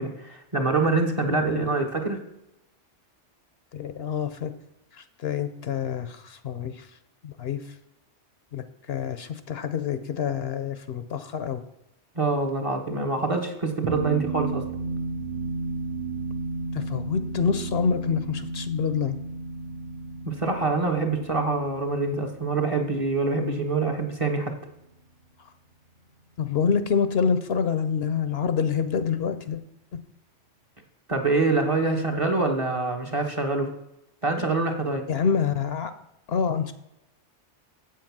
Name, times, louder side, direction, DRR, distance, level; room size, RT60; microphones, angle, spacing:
voice 1, 0.0-2.2 12.1-14.6 20.2-24.5 31.1-33.7 34.2-35.0, right 3 dB, 30° right, 2 dB, 1.2 m, -25 dB
voice 2, 1.2-1.8 3.7-4.5 4.9-6.9 7.2-7.6 8.5-11.6 16.7-19.2 26.4-29.6 35.1-35.9 36.3-36.7, left 6 dB, 65° left, 11 dB, 0.8 m, -27 dB
sound 1, 13.8-24.5, right 3 dB, 70° right, 1.6 m, -34 dB
7.8 x 7.6 x 6.0 m, 0.86 s
omnidirectional pair, 1.2 m